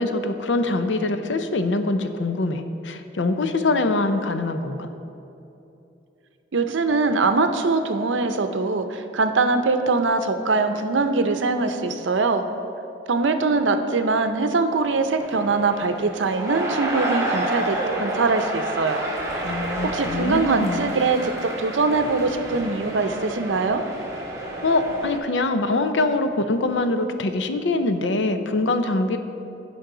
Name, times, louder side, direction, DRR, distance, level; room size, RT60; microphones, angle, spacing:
voice 1, 0.0-4.9 19.4-20.9 24.6-29.2, left 2 dB, 80° left, 8 dB, 0.6 m, -24 dB
voice 2, 6.5-12.4 13.1-19.0 19.8-23.8, right 3 dB, 90° right, 8 dB, 0.6 m, -22 dB
sound 1, 15.2-25.2, right 1 dB, 15° right, 1.4 m, -30 dB
15.0 x 5.3 x 3.8 m, 2.9 s
head